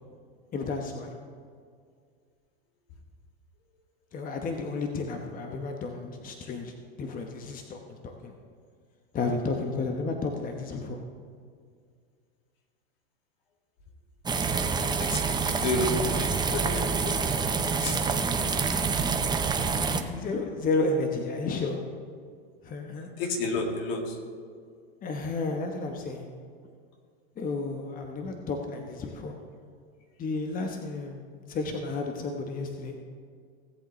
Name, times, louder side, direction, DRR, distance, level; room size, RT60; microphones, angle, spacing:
voice 1, 0.5-1.1 4.1-8.3 9.1-11.0 19.8-21.8 22.6-23.1 25.0-26.3 27.4-29.3 30.2-32.9, left 3 dB, 25° left, 3 dB, 1.0 m, -32 dB
sound 1, 14.2-20.0, right 5 dB, 15° right, 0.7 m, -27 dB
voice 2, 14.7-18.8 23.1-24.2, left 2 dB, 65° left, 2 dB, 2.2 m, -33 dB
17.5 x 8.0 x 3.2 m, 2.1 s
hypercardioid pair, 105°, 31 cm